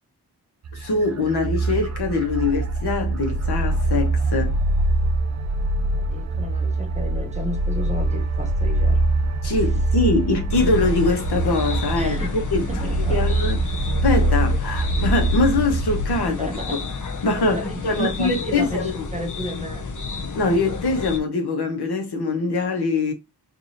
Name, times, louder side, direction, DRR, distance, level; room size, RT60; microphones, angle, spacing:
sound 1, 0.6-16.2, right 2 dB, 45° right, 0.4 m, -23 dB
voice 1, 0.7-4.5 9.4-12.2 12.5-13.6 14.0-16.8 17.2-19.1 20.2-23.1, left 3 dB, 75° left, 1.1 m, -23 dB
voice 2, 5.9-9.0 9.5-9.6 12.0-12.4 12.7-13.2 14.8-14.9 16.3-16.8 17.5-19.9, equal, 15° right, 0.9 m, -33 dB
sound 2, 10.5-21.2, left 4 dB, 50° left, 0.7 m, -32 dB
4.7 x 2.7 x 2.7 m
wide cardioid pair, 105°, 40 cm